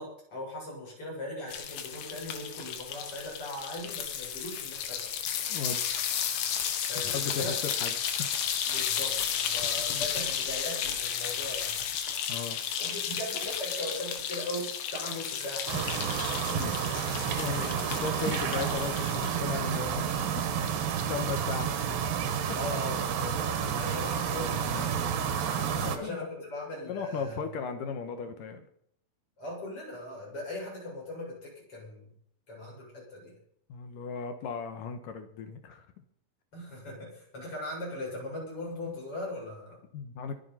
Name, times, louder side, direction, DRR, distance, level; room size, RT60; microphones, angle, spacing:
voice 1, 0.0-5.2 6.9-7.6 8.7-11.8 12.8-15.9 19.5-19.7 21.8-21.9 22.5-24.9 25.9-27.5 29.4-32.1 32.5-33.4 36.5-39.8, left 1 dB, 35° left, -3 dB, 8.7 m, -39 dB
sound 1, 1.5-19.4, left 8 dB, 85° left, 3.7 m, -33 dB
voice 2, 5.4-6.0 7.0-7.9 8.2-8.7 9.6-10.1 12.3-12.6 16.5-16.8 17.4-20.1 21.1-22.1 25.5-26.3 26.8-28.7 33.7-35.9 39.9-40.3, left 6 dB, 65° left, 8 dB, 2.5 m, -37 dB
sound 2, 15.7-26.0, right 8 dB, 65° right, 3.1 m, -30 dB
23.5 x 7.9 x 5.7 m, 0.69 s
omnidirectional pair, 4.6 m